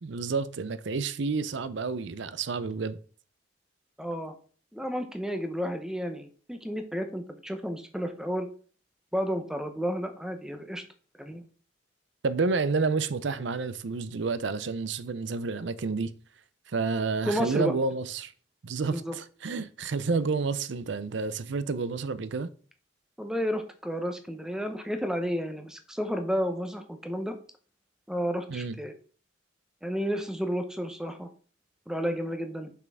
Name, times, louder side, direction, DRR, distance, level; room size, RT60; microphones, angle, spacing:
voice 1, 0.0-3.0 12.2-16.1 16.7-18.3 18.6-22.5 28.5-28.8, right 4 dB, 65° right, 0.5 m, -30 dB
voice 2, 4.0-4.3 4.7-8.5 9.1-10.8 11.2-11.4 17.3-17.7 18.9-19.2 23.2-27.3 28.1-28.9 29.8-31.3 31.9-32.7, equal, 5° right, 0.7 m, -31 dB
6.1 x 5.8 x 3.5 m
head